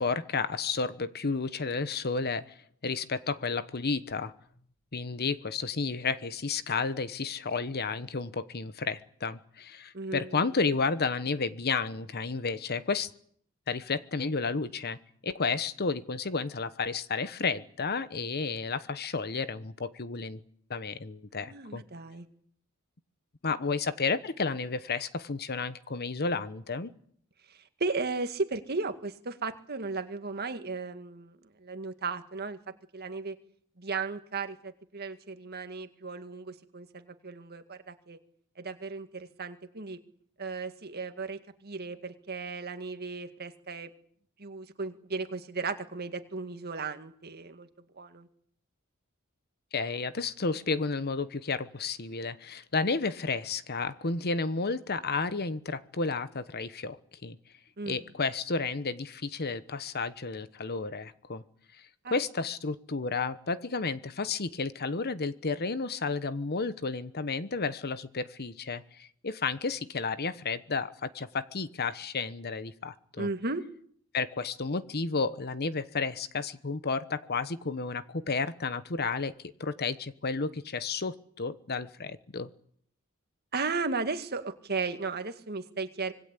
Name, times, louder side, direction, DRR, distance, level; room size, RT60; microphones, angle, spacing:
voice 1, 0.0-2.6 2.8-4.3 4.9-13.1 13.7-15.0 15.2-20.4 20.7-21.8 23.4-26.9 49.7-57.4 57.9-61.4 62.1-73.3 74.1-79.3 79.6-82.5, left 4 dB, 50° left, 14 dB, 1.1 m, -32 dB
voice 2, 9.9-10.4 21.4-22.3 27.5-32.6 32.9-33.4 33.8-38.2 38.6-40.0 40.4-43.9 44.4-47.7 47.9-48.3 57.8-58.1 62.0-62.2 73.2-73.6 83.5-86.1, right 4 dB, 50° right, 8 dB, 2.0 m, -35 dB
25.5 x 21.0 x 8.4 m, 0.64 s
head